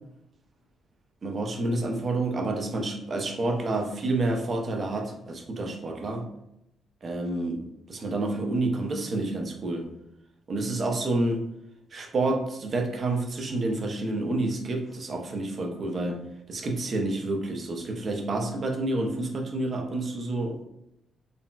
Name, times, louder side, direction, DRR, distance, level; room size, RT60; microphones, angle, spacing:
voice 1, 1.2-6.3 7.0-9.9 10.5-11.5 11.9-16.2 16.5-20.6, right 2 dB, 35° right, 2 dB, 0.4 m, -29 dB
3.8 x 2.0 x 2.2 m, 0.82 s
cardioid pair, 155°, 0 cm